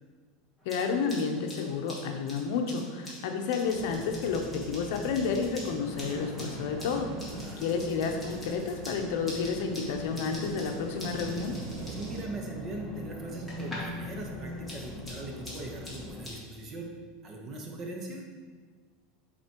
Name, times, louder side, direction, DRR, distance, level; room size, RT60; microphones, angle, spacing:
sound 1, 0.6-14.0 14.3-16.4, left 1 dB, 5° right, 1.7 m, -46 dB
voice 1, 0.7-7.1 7.6-11.5, left 5 dB, 65° left, 4 dB, 0.7 m, -31 dB
sound 2, 3.7-16.3, left 1 dB, 20° left, 0.8 m, -42 dB
sound 3, 5.9-12.2, right 3 dB, 70° right, 0.8 m, -44 dB
voice 2, 7.3-7.7 11.9-16.9 17.2-18.2, right 2 dB, 30° right, 1 dB, 1.0 m, -40 dB
7.7 x 4.2 x 3.0 m, 1.5 s
supercardioid pair, 145°, 0 cm